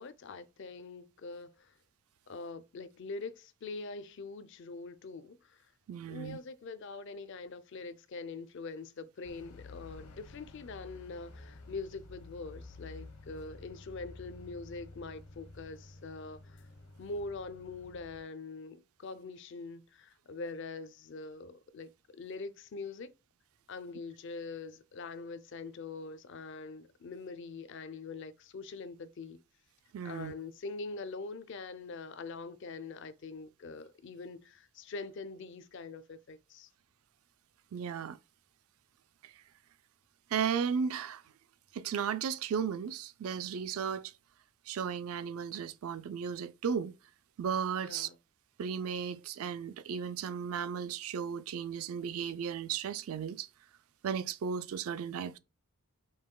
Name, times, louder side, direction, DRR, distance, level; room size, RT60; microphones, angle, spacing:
voice 1, 0.0-1.8 2.3-5.7 6.1-16.6 17.0-23.1 23.7-29.4 30.0-36.7 47.8-48.2, left 3 dB, 55° left, 0.4 m, -43 dB
voice 2, 5.9-6.4 29.9-30.3 37.7-38.2 39.2-39.3 40.3-41.2 41.7-44.1 44.7-46.9 47.4-48.1 48.6-53.5 54.0-55.4, right 7 dB, 70° right, 0.4 m, -35 dB
sound 1, 9.2-18.2, left 3 dB, 80° left, 0.8 m, -51 dB
5.5 x 3.0 x 2.2 m
head